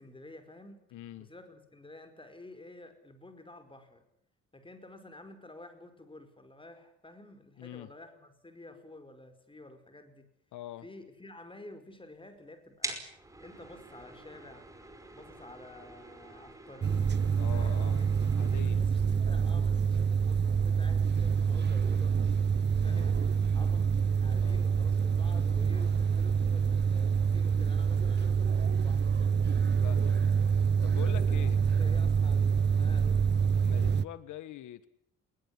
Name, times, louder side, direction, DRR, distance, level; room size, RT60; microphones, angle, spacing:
voice 1, 0.0-0.8 1.2-4.0 4.5-10.3 10.8-13.0 13.4-14.7 15.1-18.1 18.6-22.2 22.8-29.5 31.0-33.3, left 2 dB, 15° left, 8 dB, 5.1 m, -51 dB
voice 2, 0.9-1.3 7.6-7.9 10.5-10.9 17.4-18.1 18.4-18.8 22.9-23.1 24.4-24.6 29.8-30.4 30.8-31.6 33.6-34.9, left 13 dB, 80° left, 15 dB, 1.5 m, -44 dB
sound 1, 12.8-18.6, right 2 dB, 10° right, 5.2 m, -45 dB
sound 2, 16.8-34.0, right 6 dB, 35° right, 0.9 m, -26 dB
21.0 x 20.5 x 9.9 m, 0.70 s
cardioid pair, 90°, 30 cm